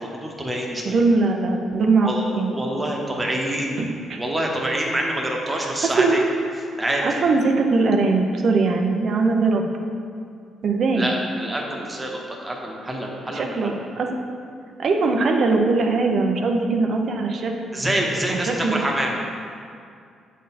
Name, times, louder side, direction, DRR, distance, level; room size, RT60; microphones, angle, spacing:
voice 1, 0.0-0.9 2.0-3.8 4.2-6.2 6.8-7.0 10.9-13.7 17.7-19.1, right 1 dB, 15° right, -1 dB, 1.1 m, -26 dB
voice 2, 0.8-2.5 3.8-4.2 5.5-6.3 7.0-9.6 10.6-11.1 13.3-14.2 14.8-17.5 18.3-18.8, right 3 dB, 55° right, 3 dB, 0.7 m, -21 dB
8.2 x 4.2 x 4.2 m, 2.3 s
cardioid pair, 90°, 0 cm